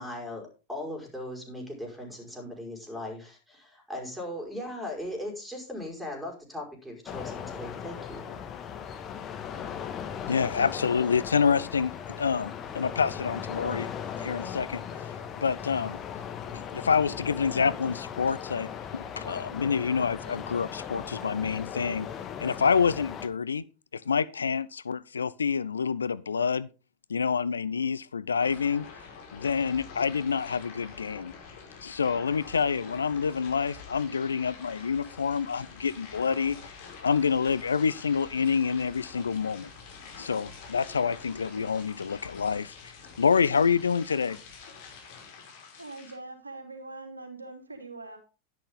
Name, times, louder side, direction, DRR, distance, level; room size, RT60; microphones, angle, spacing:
voice 1, 0.0-8.4, left 1 dB, ahead, 5.3 m, -38 dB
sound 1, 7.1-23.3, left 8 dB, 30° left, 1.8 m, -38 dB
voice 2, 10.3-13.9 14.2-14.8 15.4-16.0 16.5-22.1 22.4-23.6 23.9-26.7 27.1-28.9 29.3-31.3 31.8-36.6 37.0-39.7 40.2-42.7 43.2-44.4, left 6 dB, 70° left, 0.5 m, -27 dB
sound 2, 28.4-46.1, left 5 dB, 50° left, 4.9 m, -47 dB
voice 3, 45.8-48.2, right 2 dB, 80° right, 2.9 m, -42 dB
11.5 x 10.5 x 3.8 m
figure-of-eight pair, 90°, 0 cm